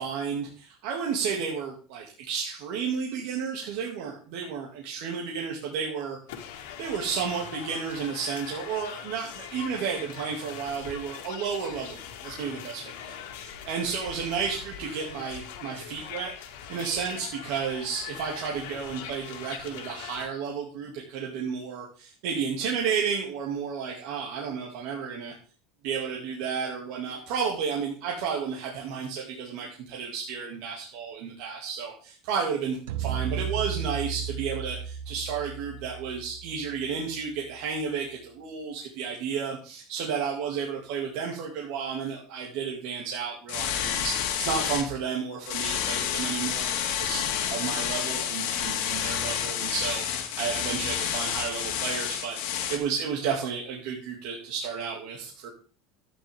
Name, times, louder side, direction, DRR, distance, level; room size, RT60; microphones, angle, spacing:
voice 1, 0.0-6.2 6.8-16.3 16.7-25.3 25.8-47.2 47.5-50.0 50.4-52.4 52.7-55.5, right 6 dB, 55° right, -2 dB, 2.4 m, -32 dB
sound 1, 6.3-20.3, left 9 dB, 90° left, 1.9 m, -42 dB
sound 2, 32.9-37.2, right 8 dB, 85° right, 1.0 m, -34 dB
sound 3, 43.5-44.9 45.5-52.8, left 9 dB, 65° left, 2.1 m, -29 dB
12.0 x 9.7 x 3.7 m, 0.40 s
cardioid pair, 180°, 0 cm